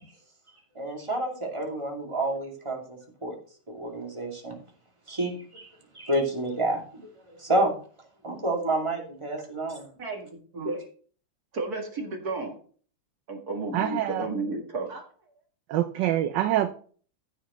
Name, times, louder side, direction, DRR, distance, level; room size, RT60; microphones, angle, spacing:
voice 1, 0.7-3.3 3.7-4.6 5.1-5.7 5.9-6.8 7.4-7.7 8.2-9.9, right 1 dB, 15° right, -1 dB, 2.4 m, -29 dB
voice 2, 10.5-10.9 11.5-12.6 13.3-15.1, right 3 dB, 45° right, 2 dB, 2.2 m, -32 dB
voice 3, 13.7-14.3 15.7-16.7, right 12 dB, 70° right, 9 dB, 1.1 m, -25 dB
15.0 x 6.3 x 3.1 m, 0.43 s
omnidirectional pair, 2.4 m